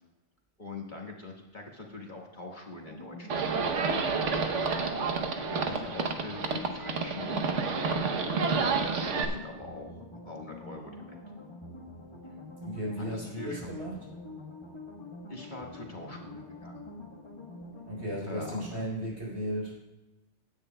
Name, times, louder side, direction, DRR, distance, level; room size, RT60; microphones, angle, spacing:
voice 1, 0.6-3.5 4.9-5.2 5.5-7.5 8.4-11.2 13.0-13.7 15.3-16.8 18.3-18.8, left 2 dB, 40° left, -1 dB, 1.7 m, -43 dB
sound 1, 2.9-18.8, left 2 dB, 25° left, 1.2 m, -45 dB
Livestock farm animals working animals, 3.3-9.2, right 4 dB, 80° right, 1.3 m, -29 dB
voice 2, 12.6-14.0 17.8-19.8, equal, 60° right, -3 dB, 4.3 m, -35 dB
16.5 x 10.0 x 2.2 m, 1.0 s
omnidirectional pair, 1.2 m